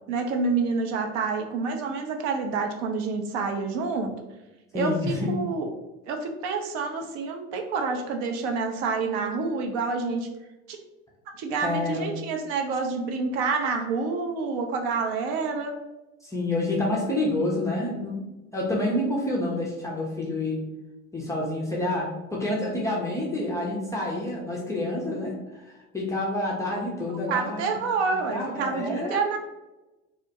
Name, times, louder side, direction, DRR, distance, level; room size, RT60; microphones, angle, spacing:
voice 1, 0.1-4.1 4.7-5.7 6.1-10.3 10.7-10.8 11.4-15.7 27.3-29.4, right 4 dB, 55° right, 4 dB, 0.5 m, -28 dB
voice 2, 4.7-5.3 11.6-12.1 16.2-18.2 18.5-20.6 21.1-27.8 28.3-29.2, left 1 dB, 10° left, -5 dB, 0.4 m, -28 dB
2.4 x 2.1 x 2.7 m, 1.1 s
hypercardioid pair, 75°, 42 cm